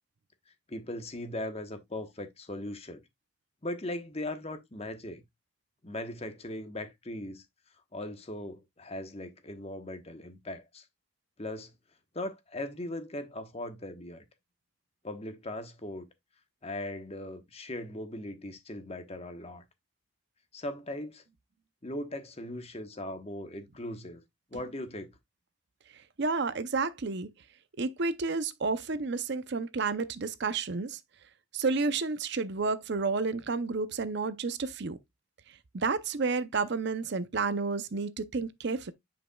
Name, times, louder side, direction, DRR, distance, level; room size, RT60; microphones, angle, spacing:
voice 1, 0.7-3.0 3.6-5.2 5.8-7.4 7.9-10.8 11.4-11.7 12.1-14.2 15.0-16.1 16.6-19.6 20.5-21.2 21.8-24.2 24.5-25.1, left 1 dB, 30° left, 1.1 m, -39 dB
voice 2, 25.9-27.3 27.8-31.0 31.5-35.0 35.5-38.9, right 4 dB, 50° right, 0.6 m, -31 dB
9.8 x 5.3 x 2.3 m
head